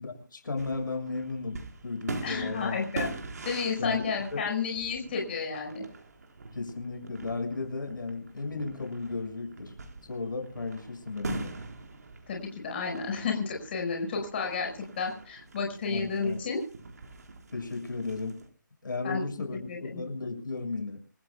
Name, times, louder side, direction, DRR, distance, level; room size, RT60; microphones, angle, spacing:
voice 1, 0.0-2.8 3.8-4.0 4.3-4.4 6.5-9.7 10.0-11.5 15.9-16.4 17.5-18.4 18.8-21.0, left 3 dB, 75° left, 5 dB, 6.4 m, -34 dB
sound 1, 0.6-18.5, right 3 dB, 55° right, 4.4 m, -43 dB
voice 2, 2.2-3.1 3.4-5.8 12.3-16.6 19.0-19.3 19.7-20.0, left 5 dB, 30° left, 1 dB, 5.3 m, -31 dB
27.0 x 14.5 x 2.3 m, 0.43 s
hypercardioid pair, 165°, 11 cm